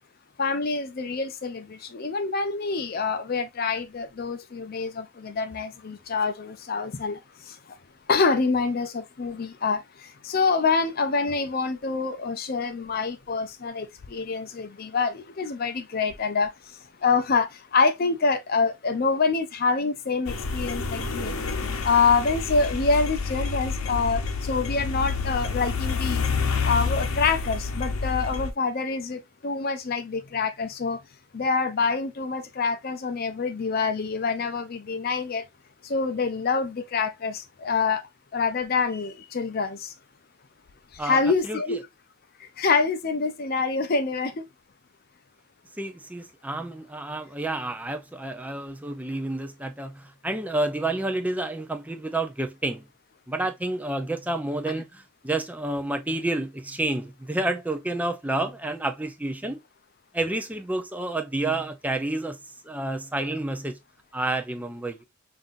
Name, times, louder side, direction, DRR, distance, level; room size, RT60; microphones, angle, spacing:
voice 1, 0.4-7.2 7.5-7.6 8.1-9.8 10.2-16.5 17.0-21.4 21.8-26.2 26.6-31.0 31.3-35.4 35.8-38.0 38.3-39.9 41.0-41.9 42.6-44.4, left 4 dB, 45° left, 0.5 m, -26 dB
sound 1, 20.3-28.5, left 4 dB, 75° left, 0.8 m, -28 dB
voice 2, 41.0-41.8 45.8-52.9 53.3-59.6 60.1-62.4 62.6-63.8 64.1-65.0, right 2 dB, 5° right, 0.5 m, -29 dB
5.4 x 2.6 x 2.4 m
head